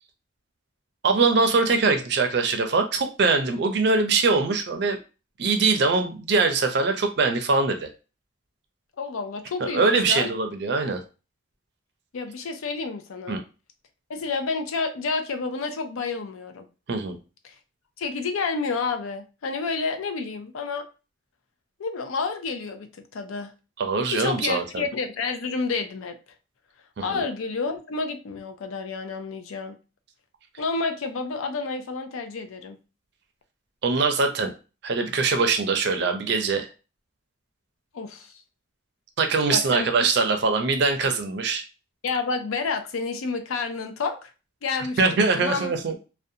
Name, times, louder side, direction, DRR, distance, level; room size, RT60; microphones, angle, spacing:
voice 1, 1.0-5.0 5.4-7.9 9.7-11.0 13.3-13.4 16.9-17.2 23.8-24.8 27.0-27.2 33.8-34.5 34.8-36.7 39.2-41.6 45.0-46.0, right 4 dB, 55° right, 5 dB, 0.4 m, -22 dB
voice 2, 9.0-10.3 12.1-13.4 14.1-16.7 17.4-17.5 18.0-20.9 21.8-23.5 24.1-26.1 27.0-29.8 30.6-32.8 37.9-38.3 39.5-39.9 42.0-44.3 44.6-45.7, left 4 dB, 90° left, 6 dB, 0.5 m, -29 dB
2.5 x 2.1 x 2.6 m, 0.32 s
head